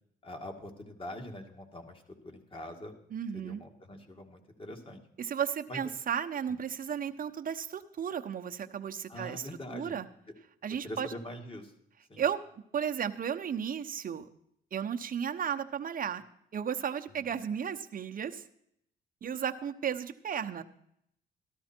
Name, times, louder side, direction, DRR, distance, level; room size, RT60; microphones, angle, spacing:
voice 1, 0.2-3.0 3.3-5.0 5.7-5.8 9.1-10.0 10.8-11.7 12.1-12.2, left 1 dB, 25° left, 4 dB, 2.1 m, -43 dB
voice 2, 3.1-3.6 5.2-10.1 10.6-11.1 12.2-12.4 12.7-14.3 14.7-16.2 16.5-18.4 19.2-20.6, right 8 dB, 45° right, 6 dB, 0.9 m, -34 dB
13.0 x 13.0 x 4.4 m, 0.73 s
cardioid pair, 90°, 20 cm